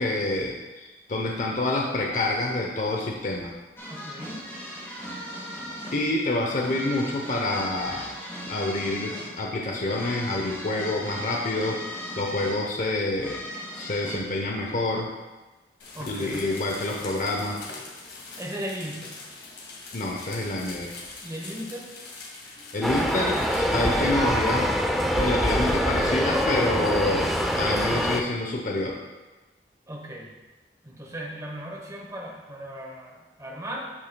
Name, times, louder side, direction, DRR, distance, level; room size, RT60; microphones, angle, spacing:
voice 1, 0.0-3.5 5.9-8.1 8.5-13.4 13.7-15.1 16.0-17.6 19.9-21.0 22.7-24.7 25.1-27.3 27.6-29.0, left 2 dB, 45° left, 0 dB, 0.7 m, -27 dB
sound 1, 3.8-14.1, equal, 15° left, 1.8 m, -39 dB
voice 2, 3.9-4.4 15.9-16.5 18.4-19.2 21.2-21.9 29.9-30.3 30.8-33.9, equal, 20° right, -2 dB, 1.1 m, -37 dB
sound 2, 15.8-23.6, left 3 dB, 80° left, 1.9 m, -43 dB
sound 3, 22.8-28.2, equal, ahead, 0.5 m, -24 dB
12.5 x 6.1 x 2.2 m, 1.1 s
head